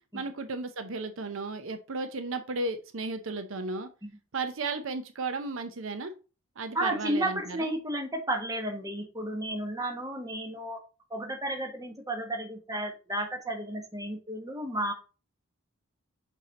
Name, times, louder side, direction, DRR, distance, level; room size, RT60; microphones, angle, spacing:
voice 1, 0.1-3.9 4.3-6.1 6.6-7.7, right 3 dB, 70° right, 8 dB, 0.7 m, -34 dB
voice 2, 6.7-10.8 11.1-14.9, right 1 dB, 15° right, 2 dB, 1.4 m, -32 dB
5.8 x 4.5 x 4.0 m, 0.32 s
head